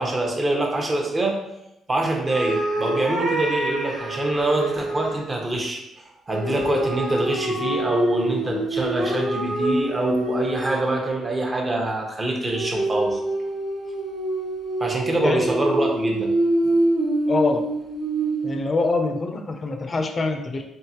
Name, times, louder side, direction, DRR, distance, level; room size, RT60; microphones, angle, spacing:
voice 1, 0.0-1.4 1.9-5.8 6.3-13.2 14.8-16.3 16.6-16.8, right 2 dB, 25° right, 0 dB, 0.9 m, -24 dB
sound 1, 2.3-5.2 6.3-11.1 12.5-18.6, right 1 dB, 60° right, 1.1 m, -26 dB
voice 2, 17.3-17.7 18.4-20.6, left 3 dB, 35° left, 5 dB, 0.6 m, -24 dB
3.6 x 3.6 x 2.9 m, 0.87 s
cardioid pair, 90°, 0 cm